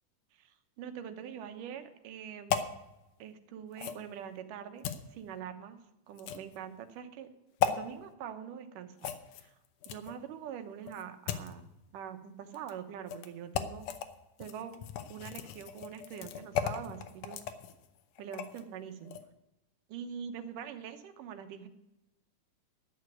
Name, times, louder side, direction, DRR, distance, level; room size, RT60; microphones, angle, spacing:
voice 1, 0.3-2.6 3.2-5.8 6.1-7.3 7.6-9.1 9.4-9.6 9.9-11.6 11.9-13.9 14.4-14.8 15.1-17.4 18.2-19.2 19.9-21.7, right 8 dB, 80° right, 8 dB, 2.6 m, -44 dB
sound 1, 2.5-2.7 3.8-4.0 4.8-5.0 6.2-6.6 7.6-7.8 9.0-10.2 10.9-11.5 12.5-12.7 13.1-13.3 13.5-14.1 14.4-18.6 19.0-19.2, left 9 dB, 75° left, 2.3 m, -35 dB
12.0 x 6.5 x 9.2 m, 0.89 s
omnidirectional pair, 3.7 m